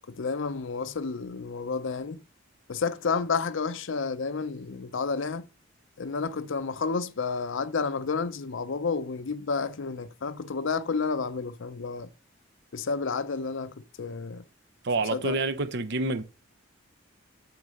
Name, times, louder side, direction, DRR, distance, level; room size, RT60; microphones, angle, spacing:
voice 1, 0.1-2.2 2.7-5.5 6.0-12.1 12.7-14.4 15.1-15.3, left 4 dB, 65° left, 0.6 m, -30 dB
voice 2, 14.8-16.2, right 2 dB, 60° right, 0.8 m, -27 dB
8.6 x 4.0 x 6.5 m
head